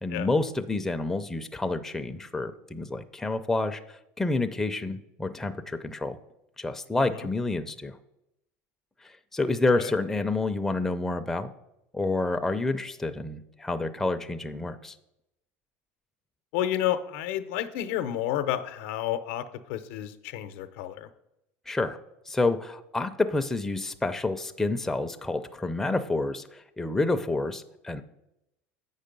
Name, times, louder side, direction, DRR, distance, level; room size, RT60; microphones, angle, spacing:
voice 1, 0.0-6.2 6.6-8.0 9.0-11.5 11.9-15.0 21.7-22.0 22.3-28.0, left 2 dB, 5° left, 7 dB, 0.4 m, -29 dB
voice 2, 7.0-7.3 9.8-9.9 16.5-21.1, left 11 dB, 75° left, 11 dB, 0.7 m, -31 dB
8.1 x 5.5 x 5.2 m, 0.86 s
supercardioid pair, 130°, 7 cm